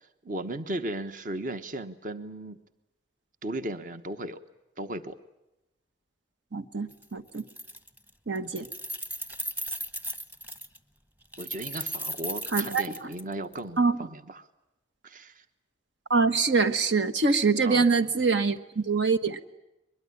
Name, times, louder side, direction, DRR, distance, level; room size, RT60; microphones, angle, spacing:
voice 1, 0.0-2.6 3.4-4.4 4.8-5.2 8.4-8.5 11.4-14.5 15.0-15.4 17.6-17.8, right 1 dB, 50° right, 10 dB, 1.1 m, -36 dB
voice 2, 6.5-7.4 8.3-8.7 12.5-12.8 13.8-13.9 16.1-19.4, right 4 dB, 85° right, 10 dB, 1.3 m, -24 dB
Keys jangling, 6.9-7.0 7.3-8.1 8.4-10.8 11.3-13.6, equal, 10° right, 1.2 m, -36 dB
22.5 x 22.5 x 9.9 m, 0.93 s
head